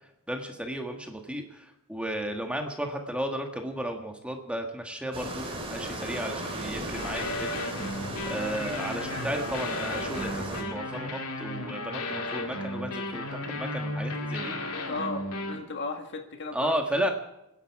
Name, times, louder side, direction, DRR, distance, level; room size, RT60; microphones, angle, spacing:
voice 1, 0.3-7.5 8.3-14.5 16.5-17.1, right 1 dB, 5° right, 3 dB, 1.5 m, -33 dB
sound 1, 5.1-10.6, right 1 dB, 25° right, 3.5 m, -36 dB
sound 2, 6.9-15.6, left 2 dB, 85° left, 2.4 m, -34 dB
voice 2, 14.7-17.1, left 3 dB, 50° left, 5 dB, 1.7 m, -36 dB
26.0 x 11.0 x 4.7 m, 0.88 s
head